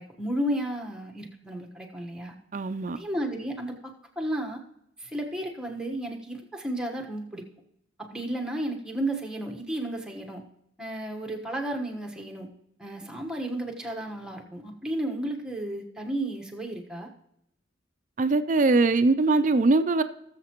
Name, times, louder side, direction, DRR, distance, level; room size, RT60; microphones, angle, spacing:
voice 1, 0.0-2.3 3.0-4.6 5.0-7.5 8.0-10.4 10.8-12.5 12.8-17.1, right 1 dB, 5° right, 1.1 m, -33 dB
voice 2, 2.5-3.0 18.2-20.0, right 3 dB, 40° right, 0.4 m, -22 dB
18.0 x 7.3 x 3.0 m
head